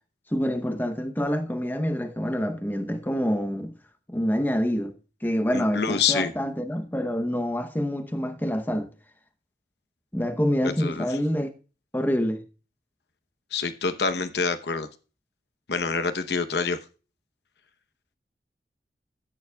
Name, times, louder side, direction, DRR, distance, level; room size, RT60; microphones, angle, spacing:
voice 1, 0.3-3.7 4.1-5.0 5.2-8.9 10.1-11.5 11.9-12.4, equal, 10° left, 0.8 m, -26 dB
voice 2, 5.5-6.3 10.8-11.1 13.5-14.9 15.7-16.8, left 5 dB, 70° left, 0.9 m, -26 dB
14.0 x 9.3 x 2.3 m
head